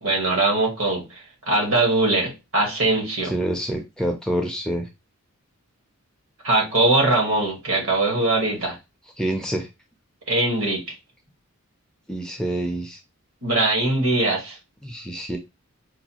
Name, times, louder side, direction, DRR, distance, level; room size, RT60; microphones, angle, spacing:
voice 1, 0.0-3.3 6.4-8.8 10.3-10.8 13.4-14.6, right 2 dB, 65° right, 1.4 m, -21 dB
voice 2, 3.2-4.9 9.2-9.7 12.1-13.0 14.8-15.4, right 1 dB, 5° left, 0.4 m, -27 dB
4.7 x 2.2 x 2.8 m
head